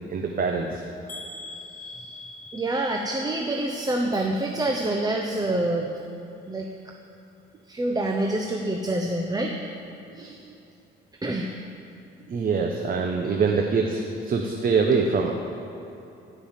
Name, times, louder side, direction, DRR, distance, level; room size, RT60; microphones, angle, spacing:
voice 1, 0.1-0.8 10.2-10.4 12.3-15.3, right 5 dB, 45° right, 2 dB, 1.0 m, -24 dB
sound 1, 1.1-5.1 5.4-6.0 6.4-6.6 6.9-7.0, left 2 dB, 45° left, 1.8 m, -44 dB
voice 2, 1.8-2.1 2.5-6.0 6.5-6.7 7.7-9.5 10.1-10.4 11.2-11.5, right 1 dB, 20° right, 1 dB, 0.9 m, -27 dB
14.5 x 5.6 x 7.3 m, 2.8 s
cardioid pair, 90°, 20 cm